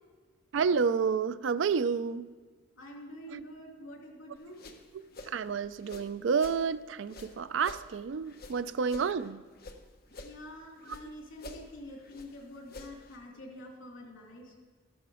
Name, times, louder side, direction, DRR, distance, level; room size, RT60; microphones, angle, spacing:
voice 1, 0.5-2.3 3.3-3.4 5.2-9.4 10.9-11.0, right 5 dB, 70° right, 14 dB, 0.4 m, -30 dB
voice 2, 2.8-4.6 10.2-14.5, left 1 dB, 90° left, 0 dB, 3.0 m, -47 dB
sound 1, 4.3-6.6 7.0-9.8 10.1-11.1 11.3-13.2, left 2 dB, 50° left, 1.2 m, -48 dB
13.5 x 11.5 x 5.0 m, 1.4 s
head